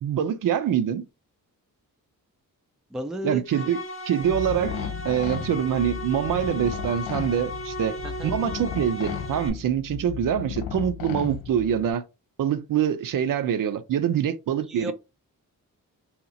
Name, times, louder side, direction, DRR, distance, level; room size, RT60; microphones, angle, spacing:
voice 1, 0.0-1.0 3.2-4.7 5.0-12.0 12.4-14.9, right 9 dB, 70° right, 0.5 m, -25 dB
voice 2, 2.9-3.4 8.0-8.3 14.7-14.9, equal, ahead, 0.3 m, -32 dB
sound 1, 3.4-9.5, left 1 dB, 40° left, 0.7 m, -36 dB
sound 2, 4.2-11.9, left 8 dB, 85° left, 0.6 m, -35 dB
2.9 x 2.4 x 3.8 m
wide cardioid pair, 140°, 34 cm